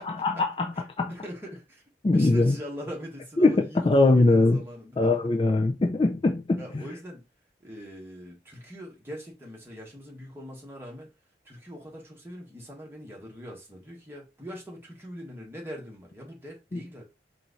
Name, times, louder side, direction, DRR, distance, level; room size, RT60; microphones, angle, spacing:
voice 1, 0.0-1.1 2.0-2.6 3.4-4.6 5.0-6.8 16.7-16.8, left 2 dB, 30° left, 0.3 m, -22 dB
voice 2, 1.1-1.8 2.1-5.2 6.6-7.2 7.6-11.1 11.4-17.0, equal, 15° right, 1.4 m, -42 dB
4.3 x 2.5 x 4.0 m
head